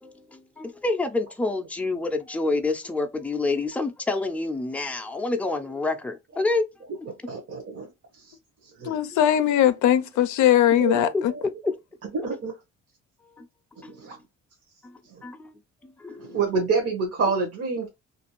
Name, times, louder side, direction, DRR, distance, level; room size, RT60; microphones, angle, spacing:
voice 1, 0.0-6.6 11.1-11.2 11.6-11.7 13.4-13.5 13.8-14.0 14.8-15.5 15.8-16.5, left 3 dB, 5° left, 0.5 m, -28 dB
voice 2, 7.1-7.9 8.8-8.9 10.8-11.1 12.1-12.5 14.0-14.1 16.2-17.9, right 4 dB, 50° right, 0.9 m, -27 dB
voice 3, 8.8-11.3, left 11 dB, 75° left, 0.5 m, -20 dB
2.6 x 2.4 x 2.9 m
cardioid pair, 90°, 30 cm